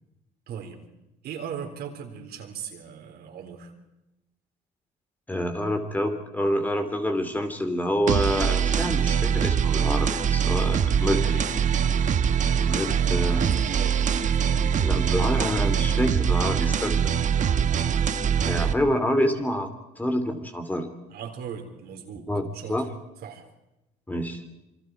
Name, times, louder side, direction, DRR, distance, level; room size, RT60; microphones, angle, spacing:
voice 1, 0.5-0.8 1.2-3.7 12.8-14.5 18.4-18.8 21.1-22.9 23.2-23.5, right 7 dB, 70° right, 3 dB, 4.1 m, -39 dB
voice 2, 5.3-11.4 12.7-13.4 14.6-17.1 18.4-20.9 22.3-22.9 24.1-24.4, equal, 10° left, 6 dB, 3.0 m, -27 dB
sound 1, 8.1-18.7, right 7 dB, 45° right, 1.2 m, -23 dB
27.5 x 24.0 x 4.7 m, 0.93 s
cardioid pair, 110°, 17 cm